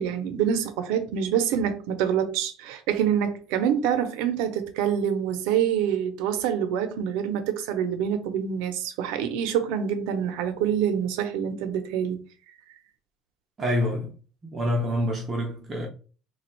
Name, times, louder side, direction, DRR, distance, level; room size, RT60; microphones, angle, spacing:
voice 1, 0.0-12.2, right 8 dB, 80° right, 0.7 m, -26 dB
voice 2, 13.6-14.1 14.4-15.9, left 1 dB, 20° right, 0.7 m, -27 dB
3.4 x 2.3 x 4.4 m
cardioid pair, 165°, 0 cm